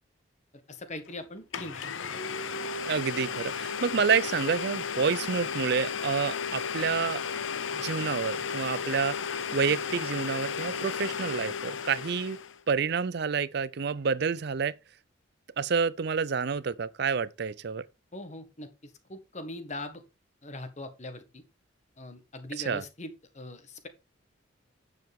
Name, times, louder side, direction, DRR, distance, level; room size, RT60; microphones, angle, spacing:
voice 1, 0.7-2.2 18.1-20.0 20.4-21.4 22.0-23.9, left 1 dB, 35° left, 1.6 m, -41 dB
Domestic sounds home sounds, 1.1-1.2 1.5-12.6, left 6 dB, 85° left, 0.9 m, -34 dB
voice 2, 2.8-7.2 7.7-9.2 9.5-12.4 12.7-14.7 15.6-17.8 22.6-22.8, right 5 dB, 55° right, 0.5 m, -28 dB
9.3 x 6.9 x 3.6 m
head